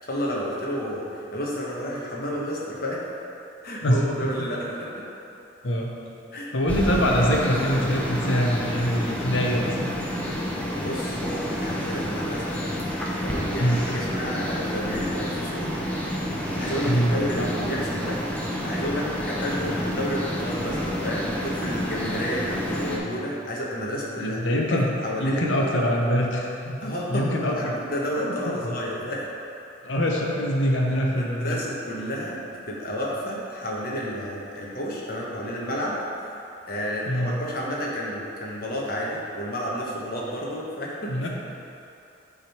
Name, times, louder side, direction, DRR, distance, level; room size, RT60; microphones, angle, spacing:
voice 1, 0.0-3.1 3.6-5.1 6.3-6.5 10.8-12.6 13.2-15.7 16.6-18.2 18.6-24.4 24.7-25.7 26.8-29.3 30.9-41.3, equal, 50° left, -4 dB, 1.1 m, -31 dB
voice 2, 6.5-10.0 13.6-13.8 16.9-17.5 24.2-24.9 25.2-27.8 28.2-28.3 29.8-31.6 37.1-37.4 41.1-41.3, equal, 80° left, -1 dB, 0.9 m, -24 dB
sound 1, 6.7-23.0, equal, 10° left, 0.7 m, -29 dB
8.9 x 3.7 x 4.4 m, 2.8 s
head